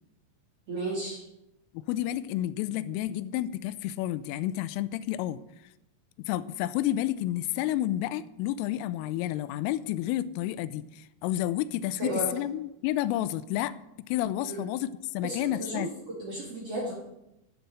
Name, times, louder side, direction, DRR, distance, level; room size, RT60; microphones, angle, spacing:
voice 1, 0.7-1.2 12.0-12.3 14.4-14.6 15.2-15.8 16.2-16.9, right 1 dB, 40° right, -5 dB, 2.3 m, -33 dB
voice 2, 1.7-5.4 6.3-15.9, left 13 dB, 85° left, 15 dB, 3.0 m, -30 dB
11.5 x 8.1 x 7.8 m, 0.87 s
omnidirectional pair, 6.0 m